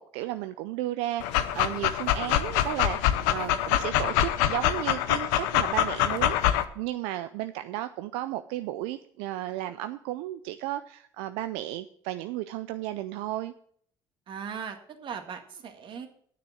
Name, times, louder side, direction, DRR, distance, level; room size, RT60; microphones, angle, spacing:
voice 1, 0.0-13.5, right 14 dB, 85° right, 0.4 m, -34 dB
Dog, 1.2-6.6, left 12 dB, 90° left, 0.7 m, -25 dB
voice 2, 14.3-16.1, right 7 dB, 55° right, 1.8 m, -38 dB
9.2 x 6.7 x 7.9 m
supercardioid pair, 75°, 10 cm